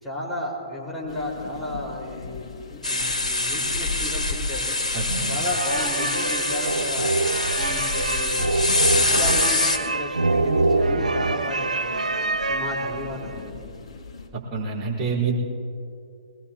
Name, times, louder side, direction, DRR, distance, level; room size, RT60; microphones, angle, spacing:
voice 1, 0.0-4.8 5.2-7.1 7.6-8.5 8.9-12.0 12.5-13.6, left 1 dB, ahead, -8 dB, 5.0 m, -33 dB
sound 1, 1.1-7.1 7.6-14.3, left 5 dB, 55° left, 2.6 m, -42 dB
sound 2, 2.8-9.8, left 2 dB, 85° left, 2.1 m, -25 dB
voice 2, 4.9-5.4 14.3-15.4, right 5 dB, 30° right, -6 dB, 4.9 m, -27 dB
sound 3, 5.4-13.3, right 2 dB, 80° right, 0.7 m, -25 dB
22.5 x 20.0 x 3.0 m, 2.5 s
figure-of-eight pair, 120°, 4 cm